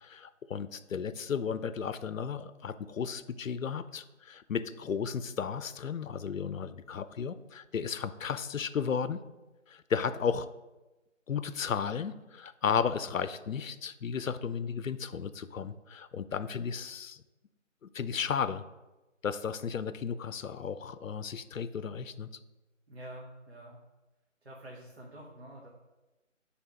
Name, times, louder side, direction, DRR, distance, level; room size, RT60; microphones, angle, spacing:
voice 1, 0.0-9.2 9.7-10.5 11.3-17.2 17.9-18.6 19.2-22.3, left 6 dB, 85° left, 14 dB, 0.6 m, -34 dB
voice 2, 22.9-23.8 24.4-25.7, right 1 dB, 55° right, -3 dB, 1.3 m, -47 dB
7.2 x 3.5 x 5.1 m, 1.1 s
figure-of-eight pair, 170°, 39 cm